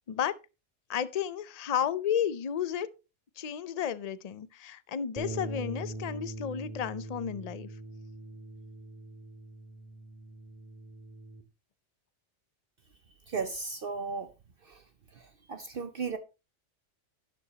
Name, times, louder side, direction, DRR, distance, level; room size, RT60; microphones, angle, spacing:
voice 1, 0.9-2.9 3.4-7.7, left 9 dB, 45° left, 0.6 m, -32 dB
sound 1, 5.2-11.4, right 2 dB, 5° right, 1.6 m, -42 dB
voice 2, 13.3-14.3 14.6-14.8 15.2-16.2, right 4 dB, 55° right, 0.9 m, -35 dB
11.5 x 10.0 x 2.8 m
omnidirectional pair, 1.2 m